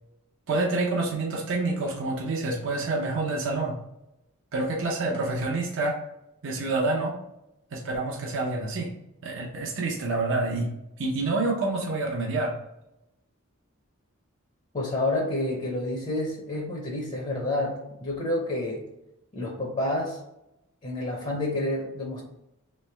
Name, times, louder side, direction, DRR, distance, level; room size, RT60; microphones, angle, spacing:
voice 1, 0.5-3.8 4.5-6.0 6.4-7.2 7.7-8.9 9.2-10.7 11.0-12.5, right 2 dB, 60° right, 0 dB, 0.7 m, -27 dB
voice 2, 14.7-18.9 19.3-20.2 20.8-22.2, left 1 dB, 35° left, -1 dB, 0.7 m, -29 dB
3.3 x 3.1 x 3.3 m, 0.85 s
head